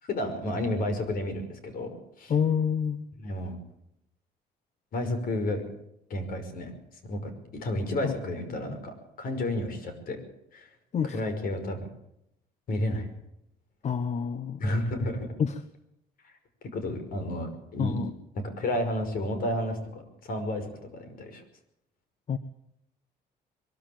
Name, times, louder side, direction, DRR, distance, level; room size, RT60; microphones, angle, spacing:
voice 1, 0.0-2.3 3.2-3.6 4.9-5.6 6.1-6.7 7.0-10.2 10.5-10.7 11.0-11.9 12.7-13.1 14.6-15.3 16.2-16.3 16.7-18.0 18.6-21.4, left 1 dB, 60° left, 8 dB, 5.6 m, -31 dB
voice 2, 2.3-3.1 8.0-8.1 8.6-8.8 10.9-11.2 13.8-14.6 15.4-15.5 17.8-18.1 22.3-22.4, left 7 dB, 40° left, 12 dB, 1.2 m, -27 dB
22.5 x 14.0 x 8.9 m, 0.79 s
cardioid pair, 110°, 17 cm